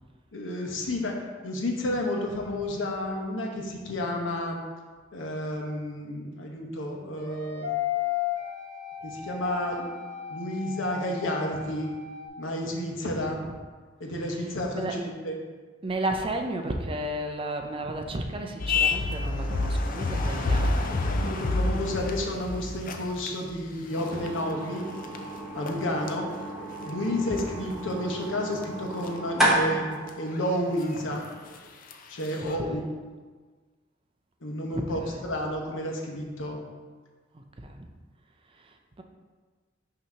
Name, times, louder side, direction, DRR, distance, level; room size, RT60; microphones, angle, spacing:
voice 1, 0.3-1.2 1.4-4.6 5.1-7.7 9.0-9.9 10.3-11.9 12.4-13.4 14.0-15.4 21.1-24.9 25.5-26.3 26.8-31.3 32.1-32.9 34.4-36.6, left 1 dB, 85° left, 1 dB, 1.0 m, -31 dB
sound 1, 7.2-12.3, left 11 dB, 55° right, 1.1 m, -34 dB
voice 2, 12.9-13.3 14.8-14.9 15.8-21.1 25.6-25.8 32.3-32.8 34.7-35.2 37.3-37.9 38.6-39.0, right 1 dB, 30° right, 3 dB, 0.5 m, -34 dB
sound 2, 18.6-23.6 24.0-24.5 24.8-25.2 25.7-25.8 26.1-26.2 27.4-27.9 28.6-28.7 28.9-29.1 30.1-30.2 30.3-30.4 30.8-31.0 31.9-32.0 32.3-32.6, left 3 dB, 45° left, 0.5 m, -28 dB
sound 3, 23.9-31.7, right 1 dB, 5° right, 1.2 m, -32 dB
5.9 x 2.9 x 5.5 m, 1.4 s
head